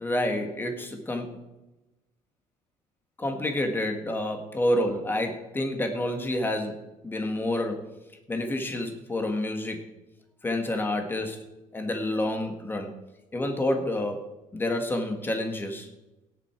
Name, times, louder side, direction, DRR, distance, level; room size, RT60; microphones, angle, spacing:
voice 1, 0.0-1.4 3.2-7.8 8.3-9.8 10.4-11.4 11.7-12.9 13.3-14.2 14.5-15.9, left 1 dB, 15° left, 5 dB, 1.7 m, -28 dB
17.5 x 8.1 x 4.6 m, 1.0 s
cardioid pair, 155°, 14 cm